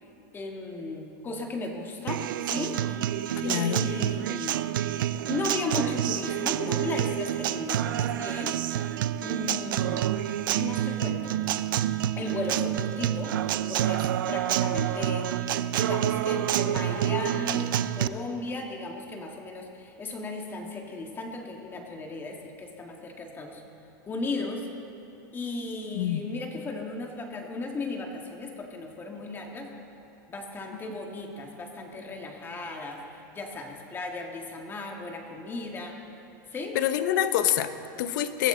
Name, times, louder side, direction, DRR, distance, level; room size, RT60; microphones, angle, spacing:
voice 1, 0.3-3.1 3.4-4.7 5.3-8.6 9.2-10.2 10.5-11.4 12.2-13.3 13.7-15.3 15.8-23.6 24.1-24.7 25.3-29.7 30.3-36.0 36.5-36.8, left 2 dB, 20° left, 2 dB, 1.9 m, -35 dB
Acoustic guitar, 2.1-18.1, right 12 dB, 80° right, 0.5 m, -28 dB
voice 2, 3.4-3.9 25.9-26.2 36.7-38.5, left 11 dB, 65° left, 11 dB, 1.0 m, -26 dB
23.0 x 14.5 x 3.9 m, 3.0 s
supercardioid pair, 140°, 11 cm